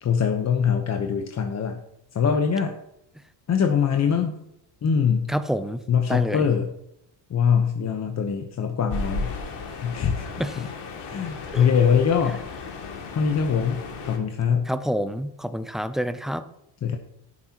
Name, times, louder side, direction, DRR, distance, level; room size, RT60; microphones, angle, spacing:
voice 1, 0.0-1.8 2.1-2.7 3.5-4.4 4.8-5.3 5.9-6.7 7.3-9.3 9.8-10.2 10.6-10.7 11.1-12.5 13.1-13.8 14.0-14.7 16.8-17.0, left 7 dB, 35° left, 1.0 m, -23 dB
voice 2, 5.3-5.8 6.1-6.5 10.4-10.6 11.5-11.7 14.7-16.4, equal, ahead, 0.5 m, -27 dB
sound 1, 8.9-14.2, left 4 dB, 60° left, 2.5 m, -35 dB
12.5 x 10.5 x 3.0 m
supercardioid pair, 105°, 47 cm